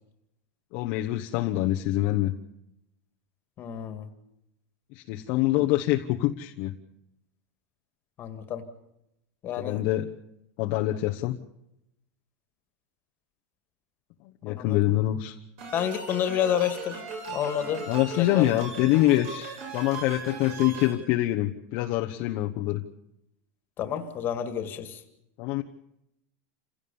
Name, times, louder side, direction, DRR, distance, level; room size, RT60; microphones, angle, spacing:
voice 1, 0.7-2.3 4.9-6.7 9.6-10.1 10.6-11.4 14.4-15.4 17.9-22.8 25.4-25.6, left 15 dB, 45° left, 1 dB, 1.1 m, -25 dB
voice 2, 3.6-4.1 5.5-5.6 8.2-8.6 9.4-9.8 14.4-14.8 15.7-17.0 17.3-17.8 18.2-18.4 23.8-25.0, left 9 dB, 25° left, 8 dB, 2.1 m, -29 dB
sound 1, 15.6-20.9, right 4 dB, 55° right, 7.1 m, -38 dB
28.0 x 16.5 x 7.1 m, 0.83 s
supercardioid pair, 165°, 8 cm